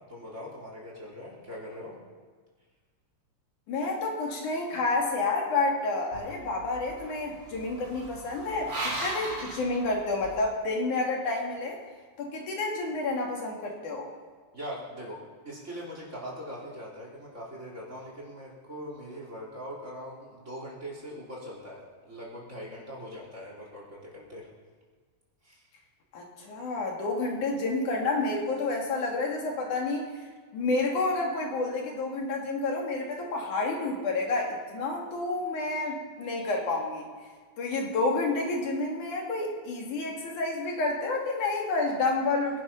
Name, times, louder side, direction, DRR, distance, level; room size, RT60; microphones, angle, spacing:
voice 1, 0.1-2.0 14.5-15.2 15.5-24.5 25.4-25.6, equal, 25° right, -4 dB, 4.0 m, -41 dB
voice 2, 3.7-11.8 12.2-14.1 26.1-30.1 30.5-37.1 37.6-42.6, left 3 dB, 85° left, 0 dB, 3.9 m, -29 dB
sound 1, 6.1-10.5, right 2 dB, 45° right, 4.6 m, -38 dB
23.0 x 11.0 x 5.8 m, 1.5 s
omnidirectional pair, 3.4 m